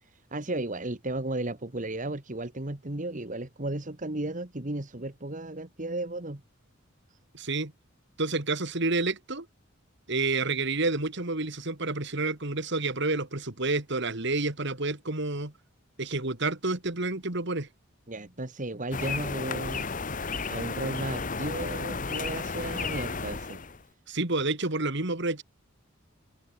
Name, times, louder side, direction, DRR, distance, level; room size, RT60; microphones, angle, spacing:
voice 1, 0.0-6.4 18.1-19.9 20.5-23.6, right 2 dB, 40° right, 1.6 m, -34 dB
voice 2, 7.3-7.7 8.2-9.5 10.1-15.5 16.0-17.7 24.1-25.4, right 3 dB, 55° right, 2.6 m, -29 dB
sound 1, 18.9-23.8, left 4 dB, 40° left, 1.3 m, -33 dB
open air
head